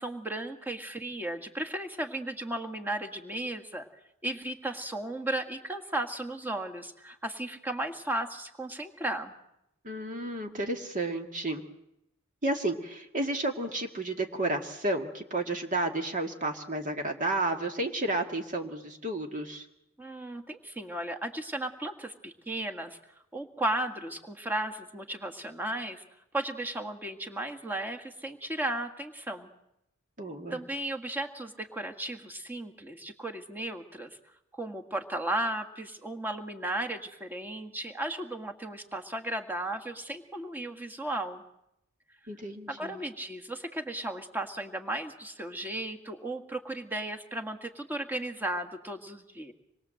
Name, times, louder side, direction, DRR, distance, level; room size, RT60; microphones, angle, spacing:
voice 1, 0.0-3.9 4.2-9.3 20.0-23.0 23.3-26.0 26.3-29.5 30.5-34.2 34.5-41.4 42.7-49.5, right 1 dB, 10° right, 4 dB, 1.9 m, -35 dB
voice 2, 9.8-11.6 12.4-19.7 30.2-30.6 42.3-43.0, right 2 dB, 40° right, 4 dB, 2.1 m, -32 dB
26.5 x 22.0 x 7.8 m, 0.81 s
head